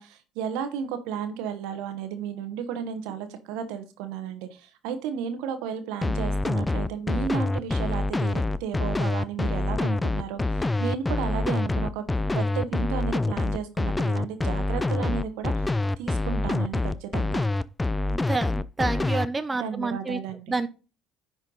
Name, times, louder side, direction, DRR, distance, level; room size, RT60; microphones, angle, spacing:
voice 1, 0.0-12.0 12.3-17.5 19.6-20.6, right 7 dB, 75° right, 9 dB, 1.1 m, -33 dB
sound 1, 6.0-19.3, left 2 dB, 15° left, 0.4 m, -26 dB
voice 2, 18.0-20.2 20.5-20.7, right 3 dB, 20° right, 11 dB, 0.7 m, -29 dB
10.0 x 4.4 x 3.9 m, 0.33 s
hypercardioid pair, 65°, 0 cm